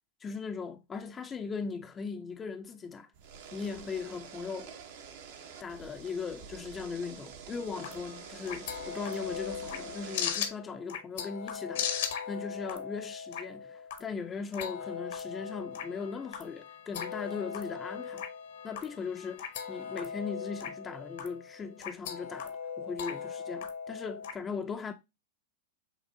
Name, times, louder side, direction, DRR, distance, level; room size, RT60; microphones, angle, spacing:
voice 1, 0.2-3.1 3.5-4.7 5.6-18.3 18.6-24.9, left 5 dB, 20° left, 0.4 m, -39 dB
sound 1, 3.1-10.3, right 6 dB, 65° right, 0.9 m, -47 dB
sound 2, 7.6-24.3, left 7 dB, 70° left, 0.9 m, -39 dB
6.6 x 2.5 x 2.6 m
hypercardioid pair, 110°, 0 cm